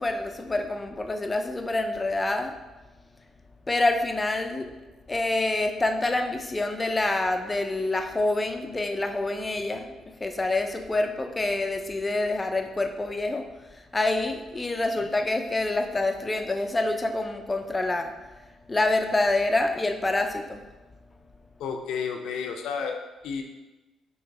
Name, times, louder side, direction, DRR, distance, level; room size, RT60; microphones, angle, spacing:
voice 1, 0.0-2.5 3.7-4.7 5.1-20.6, left 2 dB, 20° left, 5 dB, 0.6 m, -27 dB
voice 2, 21.6-23.4, left 6 dB, 80° left, 3 dB, 0.7 m, -32 dB
6.6 x 3.1 x 4.7 m, 1.1 s
cardioid pair, 90°, 0 cm